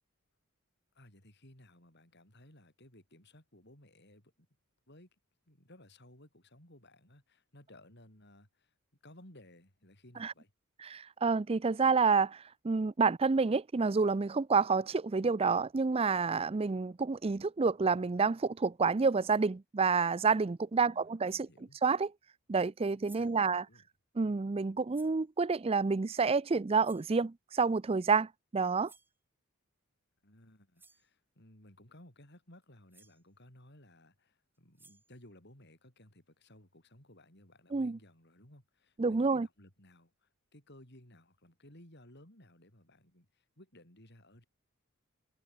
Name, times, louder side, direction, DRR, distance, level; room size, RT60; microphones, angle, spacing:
voice 1, 0.9-4.5 4.9-5.1 5.5-8.7 9.0-10.5 20.7-21.8 23.1-23.8 30.2-44.5, left 1 dB, 50° left, 7.2 m, -58 dB
voice 2, 10.8-21.5 21.8-22.1 22.5-23.7 24.2-28.9 37.7-38.0 39.0-39.5, right 4 dB, 25° right, 0.4 m, -29 dB
sound 1, 20.6-20.7 21.2-21.5 22.7-22.8 23.0-23.4 24.9-25.2 26.8-27.2 28.8-29.2 30.4-30.5 30.8-31.1 32.6-32.7 32.9-33.2 34.5-35.2, right 4 dB, 10° right, 8.0 m, -61 dB
head